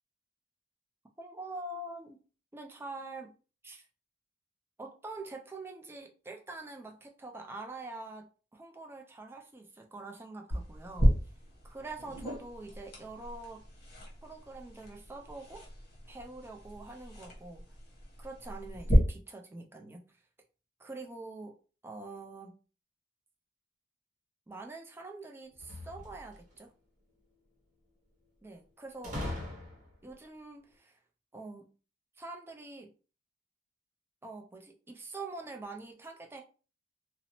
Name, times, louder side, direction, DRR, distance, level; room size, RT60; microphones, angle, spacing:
voice 1, 1.2-2.2 2.5-3.3 3.6-3.8 4.8-11.2 11.6-13.6 14.2-15.7 16.1-17.6 18.2-20.2 20.8-21.6 21.8-22.6 24.5-26.7 28.4-29.2 30.0-31.0 31.3-31.7 32.2-32.9 34.2-36.4, right 2 dB, 15° right, 0.3 m, -45 dB
sound 1, 10.5-18.9, equal, 55° left, 1.0 m, -35 dB
sound 2, 25.5-26.6 29.0-30.1, left 1 dB, 45° right, 0.8 m, -40 dB
2.6 x 2.0 x 2.8 m
head